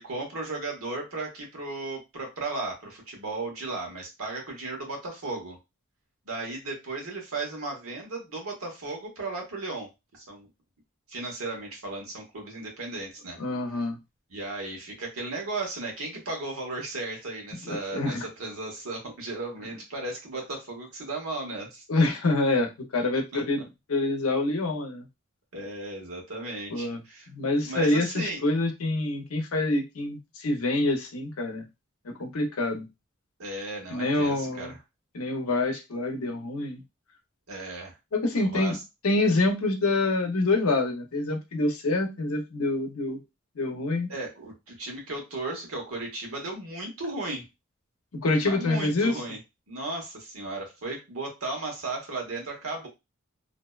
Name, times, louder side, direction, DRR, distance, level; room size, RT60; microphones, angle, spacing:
voice 1, 0.0-5.6 6.3-10.5 11.1-13.4 14.3-21.8 23.3-23.4 25.5-27.3 27.6-28.4 33.4-34.8 37.5-37.9 38.3-38.8 44.1-47.5 48.4-49.4 49.7-52.9, right 2 dB, 80° right, 1 dB, 1.0 m, -35 dB
voice 2, 13.4-14.0 17.7-18.2 21.9-23.6 23.9-25.1 26.7-27.0 27.3-31.6 32.0-32.9 33.9-34.7 35.1-36.8 38.1-38.8 39.0-43.2 43.6-44.1 48.1-49.1, left 2 dB, 85° left, 4 dB, 0.6 m, -26 dB
2.6 x 2.1 x 2.3 m, 0.23 s
head